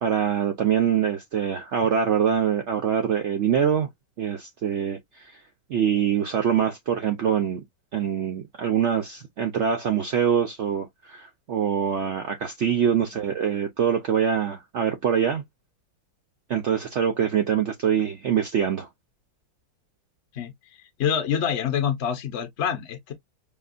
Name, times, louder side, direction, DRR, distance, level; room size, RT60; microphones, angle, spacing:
voice 1, 0.0-3.9 4.2-5.4 5.7-7.6 7.9-15.4 16.5-18.9, right 8 dB, 65° right, 0.7 m, -24 dB
voice 2, 20.3-23.1, left 8 dB, 50° left, 0.8 m, -27 dB
5.1 x 2.5 x 2.5 m
omnidirectional pair, 2.0 m